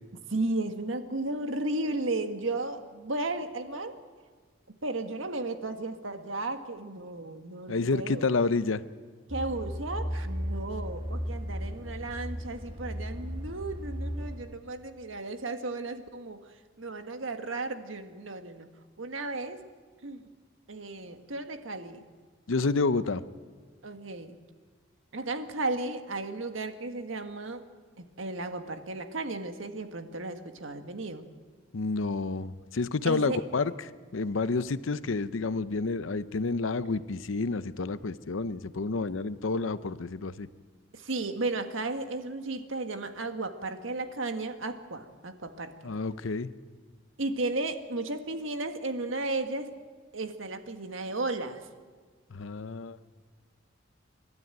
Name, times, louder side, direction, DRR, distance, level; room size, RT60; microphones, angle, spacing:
voice 1, 0.3-4.0 4.8-8.2 9.3-16.4 16.8-18.7 19.0-19.6 20.0-20.2 20.7-22.0 23.8-24.4 25.1-27.6 28.0-31.3 33.0-33.4 40.9-45.7 47.2-49.7 50.1-51.6, right 2 dB, 85° right, 7 dB, 1.6 m, -34 dB
voice 2, 7.7-8.8 22.5-23.2 31.7-33.7 34.1-40.5 45.8-46.5 52.3-53.1, left 3 dB, 85° left, 14 dB, 0.7 m, -29 dB
sound 1, 9.3-14.4, equal, 25° right, 2.7 m, -35 dB
29.5 x 12.0 x 9.0 m, 1.5 s
head